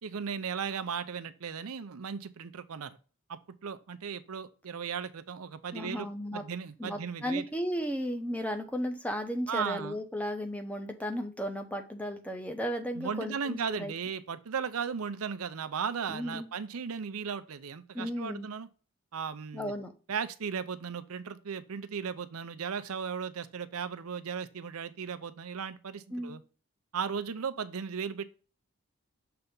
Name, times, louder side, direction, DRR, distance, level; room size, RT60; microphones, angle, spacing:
voice 1, 0.0-3.0 3.3-7.4 9.5-10.0 13.0-18.7 19.1-19.7 20.1-26.4 26.9-28.3, right 6 dB, 80° right, 0.6 m, -36 dB
voice 2, 5.7-6.4 6.8-13.9 16.1-16.5 17.9-18.5 19.5-19.9 26.1-26.4, equal, 5° left, 0.8 m, -35 dB
6.8 x 3.5 x 5.2 m
head